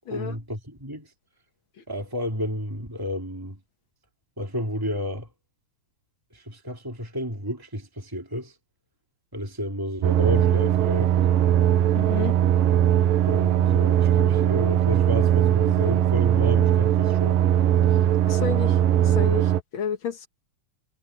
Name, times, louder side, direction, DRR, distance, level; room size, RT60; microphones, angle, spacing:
voice 1, 0.1-1.1 1.9-3.6 4.4-5.3 6.3-8.6 9.3-11.2 13.2-17.5, left 1 dB, 5° right, 1.8 m, -31 dB
sound 1, 10.0-19.6, right 10 dB, 70° right, 2.5 m, -20 dB
voice 2, 11.9-12.3 18.3-20.3, left 8 dB, 85° left, 1.1 m, -31 dB
omnidirectional pair, 4.5 m